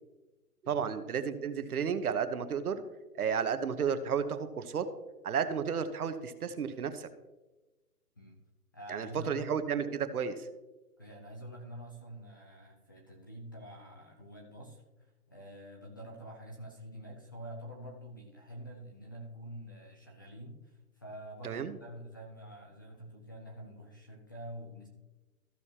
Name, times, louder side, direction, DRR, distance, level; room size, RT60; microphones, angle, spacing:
voice 1, 0.6-2.8 3.1-4.9 5.2-7.1 8.9-10.5 21.4-21.8, right 7 dB, 70° right, 10 dB, 1.1 m, -32 dB
voice 2, 8.7-9.6 11.0-24.9, equal, 15° left, -1 dB, 0.5 m, -47 dB
14.5 x 6.4 x 2.9 m, 1.1 s
hypercardioid pair, 150°, 46 cm